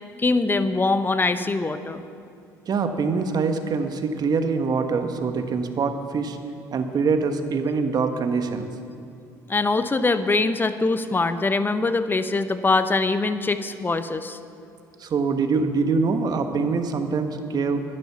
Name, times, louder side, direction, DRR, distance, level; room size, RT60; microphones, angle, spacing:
voice 1, 0.2-2.0 9.5-14.4, left 3 dB, 25° left, 11 dB, 0.9 m, -23 dB
voice 2, 2.7-6.4 6.7-8.7 15.0-17.8, right 4 dB, 50° right, 7 dB, 1.3 m, -24 dB
12.5 x 10.5 x 6.9 m, 2.5 s
hypercardioid pair, 65°, 9 cm